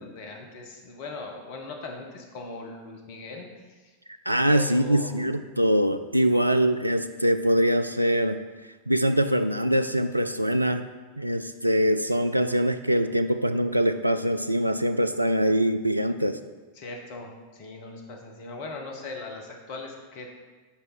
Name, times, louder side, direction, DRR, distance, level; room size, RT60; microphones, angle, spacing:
voice 1, 0.0-3.9 4.5-5.2 6.2-6.4 16.7-20.3, left 3 dB, 50° left, 2 dB, 1.2 m, -40 dB
voice 2, 4.3-8.4 8.9-10.9 11.2-16.4, equal, 85° right, 9 dB, 0.3 m, -23 dB
7.5 x 5.1 x 4.3 m, 1.3 s
figure-of-eight pair, 90°, 0 cm